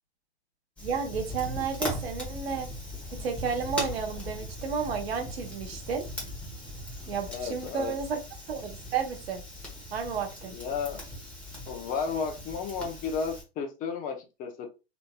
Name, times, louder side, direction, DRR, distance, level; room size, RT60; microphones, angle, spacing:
Fire, 0.8-13.4, left 1 dB, 5° left, 1.0 m, -39 dB
voice 1, 0.8-2.7 3.1-6.0 7.1-8.2 8.5-9.4 9.9-10.5, right 6 dB, 70° right, 4 dB, 1.0 m, -32 dB
voice 2, 7.3-7.9 10.5-11.0 11.7-14.7, left 5 dB, 25° left, 4 dB, 0.7 m, -33 dB
3.1 x 2.7 x 2.2 m, 0.28 s
hypercardioid pair, 110°, 32 cm